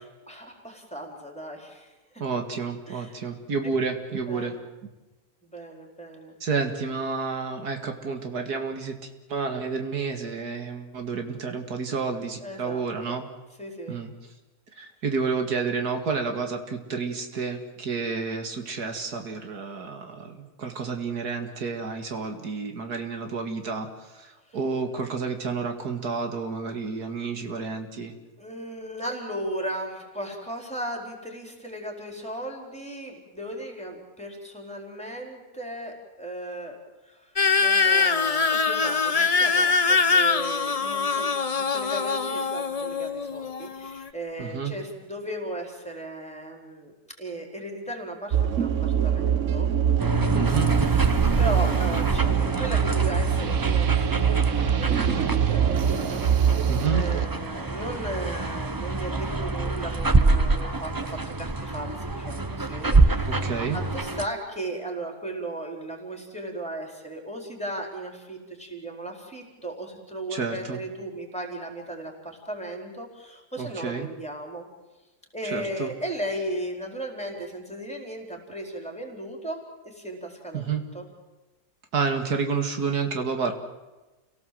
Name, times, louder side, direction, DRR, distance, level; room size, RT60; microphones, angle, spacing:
voice 1, 0.3-1.9 2.9-3.1 3.6-3.7 4.3-4.6 5.4-6.3 12.4-13.1 13.6-14.0 24.5-24.6 28.4-36.8 37.0-37.3 37.6-41.3 41.7-46.9 47.2-49.7 50.6-63.4 63.7-74.7 75.3-80.6 80.9-81.1, right 1 dB, 5° left, 2 dB, 4.5 m, -36 dB
voice 2, 2.2-4.5 6.4-8.9 9.3-13.2 13.9-14.1 14.8-23.9 24.1-28.1 44.4-44.7 50.3-50.7 56.7-57.0 63.3-63.8 70.3-70.8 73.6-74.1 75.5-75.9 80.5-80.8 81.9-83.5, right 5 dB, 75° right, 5 dB, 2.5 m, -30 dB
sound 1, 37.4-44.1, left 4 dB, 30° left, 0.7 m, -23 dB
sound 2, 48.3-57.3, right 8 dB, 55° right, 1.2 m, -24 dB
sound 3, 50.0-64.3, right 3 dB, 20° right, 0.6 m, -26 dB
29.0 x 18.0 x 7.8 m, 1.1 s
omnidirectional pair, 1.7 m